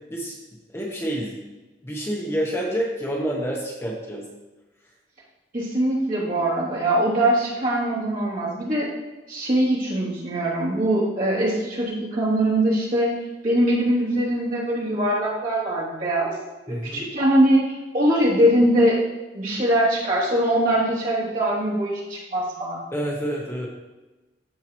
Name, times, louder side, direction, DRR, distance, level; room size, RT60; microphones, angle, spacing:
voice 1, 0.7-1.4 1.8-4.3 16.7-17.1 22.9-23.7, right 1 dB, 15° left, -3 dB, 1.0 m, -28 dB
voice 2, 5.5-8.9 9.3-13.1 13.4-16.3 16.7-17.6 17.9-19.0 19.3-22.8, right 1 dB, 45° right, -7 dB, 2.8 m, -22 dB
13.5 x 4.7 x 3.0 m, 1.1 s
head